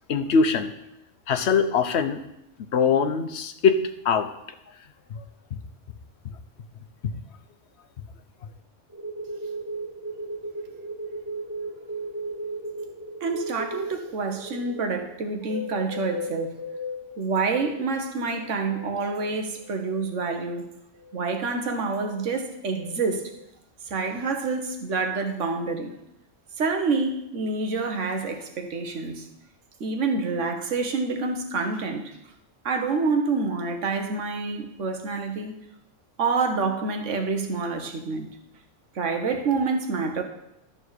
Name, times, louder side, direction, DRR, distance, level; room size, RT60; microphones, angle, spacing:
voice 1, 0.1-0.7 1.3-2.2 2.7-4.3 5.1-5.2, left 5 dB, 65° left, 9 dB, 1.0 m, -22 dB
sound 1, 8.9-17.1 17.6-20.6 20.9-23.4, right 1 dB, 15° right, 1.5 m, -37 dB
voice 2, 13.2-16.5 17.2-20.6 21.1-23.3 23.9-25.9 26.6-29.3 29.8-32.1 32.6-35.6 36.2-38.4 38.9-40.2, right 4 dB, 80° right, 5 dB, 1.5 m, -27 dB
12.5 x 4.3 x 6.5 m, 0.82 s
omnidirectional pair, 1.2 m